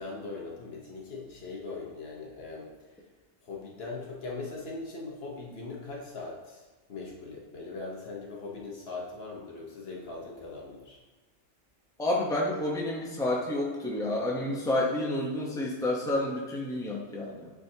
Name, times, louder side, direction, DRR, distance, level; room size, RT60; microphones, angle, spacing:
voice 1, 0.0-2.7 3.4-6.6 6.9-11.0, left 3 dB, 60° left, -2 dB, 1.2 m, -40 dB
voice 2, 12.0-17.5, left 1 dB, 5° left, -3 dB, 0.8 m, -29 dB
9.1 x 3.8 x 2.8 m, 1.2 s
omnidirectional pair, 1.2 m